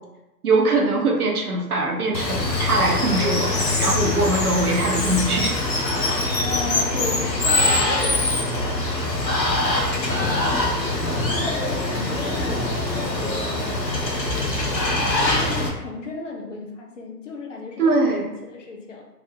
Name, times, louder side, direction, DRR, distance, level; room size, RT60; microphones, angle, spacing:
voice 1, 0.4-5.5 17.8-18.3, right 2 dB, 60° right, -1 dB, 0.9 m, -22 dB
Water, 2.1-15.7, left 2 dB, 90° left, 0.9 m, -23 dB
voice 2, 6.4-8.8 9.7-10.8 11.2-19.1, left 3 dB, 50° left, 1 dB, 0.8 m, -35 dB
3.5 x 2.5 x 3.5 m, 0.95 s
figure-of-eight pair, 130°, 49 cm